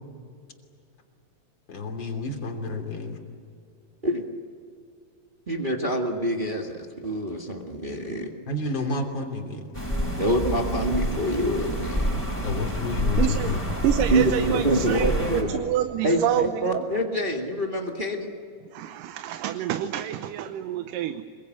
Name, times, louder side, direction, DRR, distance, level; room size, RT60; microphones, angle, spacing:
voice 1, 1.7-3.2 8.5-9.7 12.4-13.6, left 2 dB, 35° left, 4 dB, 3.5 m, -30 dB
voice 2, 5.5-8.3 10.2-12.2 14.1-15.5 16.0-18.3, right 1 dB, 25° right, 2 dB, 1.1 m, -26 dB
sound 1, 9.7-15.4, equal, 5° left, 7.0 m, -28 dB
voice 3, 13.2-13.6 13.8-16.9 18.7-21.2, right 11 dB, 75° right, 9 dB, 2.4 m, -28 dB
26.0 x 23.0 x 9.4 m, 2.3 s
omnidirectional pair, 3.9 m